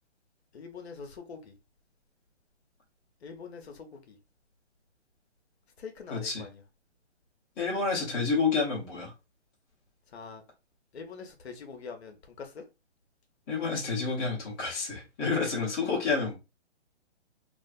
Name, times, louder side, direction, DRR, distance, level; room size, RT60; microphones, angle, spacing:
voice 1, 0.5-1.5 3.2-4.2 5.8-6.6 10.1-10.4 10.9-12.6, left 5 dB, 65° left, 0.7 m, -44 dB
voice 2, 6.1-6.4 7.6-9.1 13.5-16.3, left 4 dB, 15° left, 0.6 m, -29 dB
2.5 x 2.4 x 2.2 m
figure-of-eight pair, 135°, 35 cm